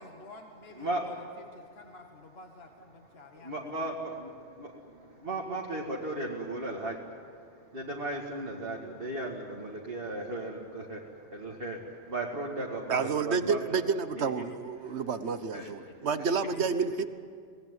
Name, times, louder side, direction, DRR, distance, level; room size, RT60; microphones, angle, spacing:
voice 1, 0.0-3.6 15.2-15.3 15.6-16.0, left 2 dB, 60° left, 4 dB, 1.7 m, -51 dB
voice 2, 0.8-1.1 3.3-13.8 14.2-14.4 14.8-15.0 15.5-15.7, right 1 dB, 55° right, -3 dB, 2.3 m, -36 dB
voice 3, 12.9-17.0, right 5 dB, 70° right, 11 dB, 1.4 m, -29 dB
25.5 x 19.0 x 9.6 m, 2.2 s
omnidirectional pair, 1.2 m